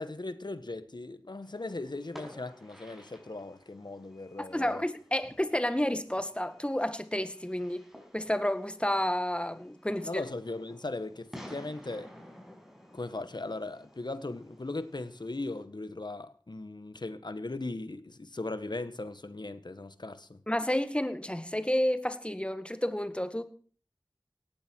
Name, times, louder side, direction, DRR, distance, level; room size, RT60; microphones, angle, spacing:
voice 1, 0.0-4.8 10.0-12.1 12.9-20.4, left 2 dB, 65° left, 1.7 m, -38 dB
Fireworks, 1.4-15.6, equal, 5° right, 6.3 m, -53 dB
voice 2, 4.5-7.8 8.1-10.2 20.5-23.4, left 1 dB, 15° left, 1.8 m, -30 dB
18.5 x 15.0 x 4.7 m
wide cardioid pair, 45°, 8 cm